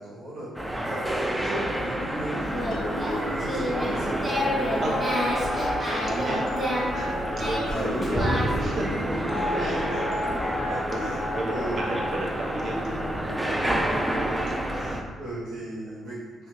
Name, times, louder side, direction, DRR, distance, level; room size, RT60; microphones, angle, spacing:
voice 1, 0.0-2.5 2.8-4.9 7.6-8.0 9.3-11.2 11.5-11.9 13.4-14.0 14.7-16.5, right 1 dB, 85° right, -11 dB, 0.8 m, -38 dB
sound 1, 0.5-15.0, right 1 dB, 10° right, 0.4 m, -29 dB
Singing, 2.4-8.7, equal, 25° right, 1.4 m, -31 dB
sound 2, 2.7-12.1, left 2 dB, 60° left, 0.5 m, -33 dB
voice 2, 5.5-9.9 10.7-13.6 14.1-15.1, right 1 dB, 55° right, -2 dB, 0.8 m, -35 dB
3.1 x 2.8 x 3.0 m, 1.5 s
cardioid pair, 90°, 0 cm